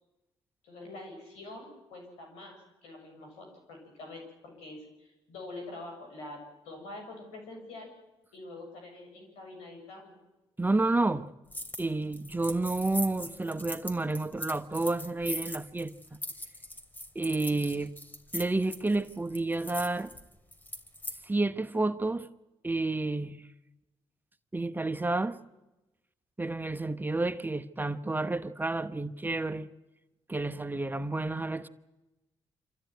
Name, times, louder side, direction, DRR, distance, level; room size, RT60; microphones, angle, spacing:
voice 1, 0.6-7.9 8.3-10.2, left 2 dB, 85° left, 7.2 m, -45 dB
voice 2, 10.6-11.3 11.8-15.9 17.1-17.9 18.3-20.1 21.2-22.3 22.6-23.4 24.5-25.4 26.4-29.7 30.3-31.7, right 2 dB, 20° right, 1.0 m, -30 dB
sound 1, 11.5-11.9 12.1-21.2, left 1 dB, 15° left, 3.0 m, -40 dB
26.5 x 14.0 x 9.4 m
supercardioid pair, 55°, 11 cm